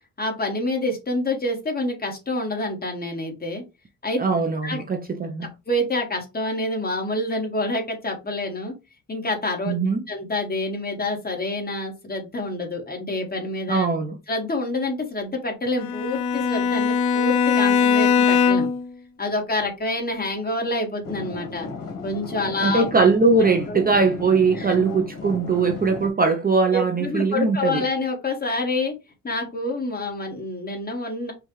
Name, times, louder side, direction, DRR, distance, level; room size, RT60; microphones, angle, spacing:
voice 1, 0.2-3.6 4.0-4.2 4.6-4.8 5.7-8.7 9.1-9.8 10.1-13.9 14.3-18.7 19.2-21.7 22.0-22.9 23.7-23.8 24.5-24.8 26.7-28.9 29.2-31.3, left 2 dB, 25° left, 1.7 m, -27 dB
voice 2, 4.2-5.5 9.7-10.1 13.7-14.2 22.6-27.8, right 4 dB, 25° right, 0.6 m, -21 dB
Bowed string instrument, 15.8-18.9, left 6 dB, 90° left, 0.7 m, -20 dB
sound 1, 21.0-26.1, left 4 dB, 65° left, 1.5 m, -35 dB
5.5 x 2.4 x 3.1 m
cardioid pair, 115°, 36 cm